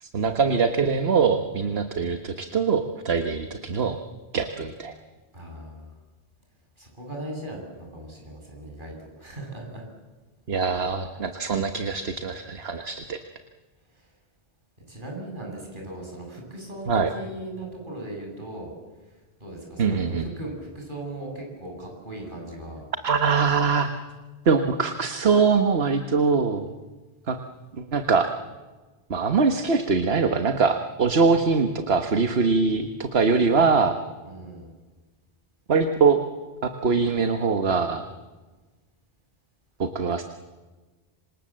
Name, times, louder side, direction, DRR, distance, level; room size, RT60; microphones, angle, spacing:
voice 1, 0.0-4.0 4.3-4.9 10.5-13.2 16.9-17.1 19.8-20.3 23.0-23.9 24.5-26.7 27.3-27.4 27.8-28.3 29.1-34.0 35.7-36.2 36.6-38.1 39.8-40.2, right 5 dB, 75° right, 7 dB, 1.6 m, -23 dB
voice 2, 5.3-5.9 6.8-9.8 14.9-18.7 19.4-22.8 34.2-34.7, right 1 dB, 50° right, 0 dB, 8.1 m, -38 dB
27.0 x 26.0 x 7.6 m, 1.3 s
omnidirectional pair, 1.1 m